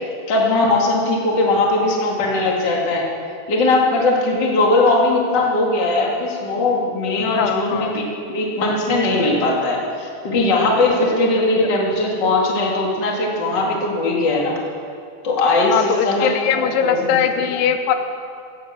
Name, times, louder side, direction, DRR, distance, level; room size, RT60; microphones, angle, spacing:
voice 1, 0.3-3.0 3.5-14.6 15.2-17.5, left 2 dB, 35° left, -1 dB, 2.0 m, -19 dB
voice 2, 7.4-8.0 15.7-17.9, left 8 dB, 85° left, 8 dB, 3.3 m, -20 dB
16.5 x 10.0 x 7.5 m, 2.4 s
omnidirectional pair, 5.2 m